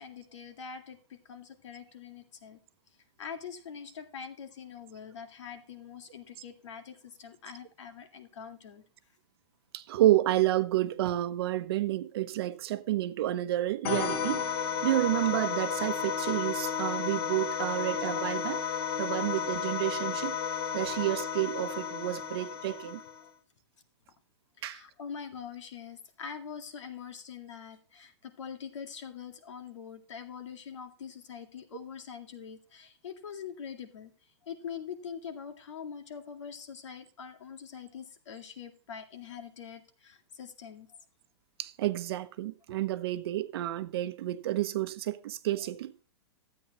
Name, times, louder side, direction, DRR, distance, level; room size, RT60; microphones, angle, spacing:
voice 1, 0.0-2.6 3.2-8.8 24.6-34.1 34.4-40.9, left 7 dB, 90° left, 2.1 m, -44 dB
voice 2, 9.7-14.4 14.8-18.6 19.0-20.4 20.7-23.0 24.6-24.8 41.6-45.9, right 14 dB, 55° right, 0.8 m, -30 dB
sound 1, 13.8-23.3, left 8 dB, 55° left, 1.4 m, -33 dB
13.0 x 8.7 x 3.0 m
hypercardioid pair, 150°, 15 cm